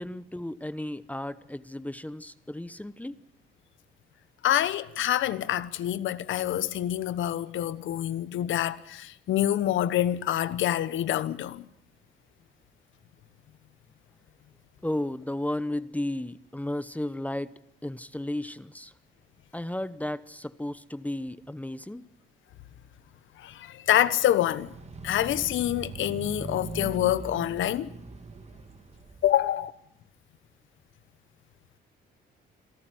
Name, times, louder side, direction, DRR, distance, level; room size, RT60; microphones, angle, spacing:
voice 1, 0.0-3.2 14.8-17.5 17.8-18.9 19.5-22.0, left 1 dB, 5° left, 0.9 m, -34 dB
voice 2, 4.4-11.6 23.4-24.7 25.0-27.9 29.2-29.7, left 12 dB, 80° left, 1.2 m, -26 dB
sound 1, 24.4-29.4, right 4 dB, 35° right, 2.2 m, -40 dB
26.5 x 13.5 x 9.3 m
cardioid pair, 90°, 20 cm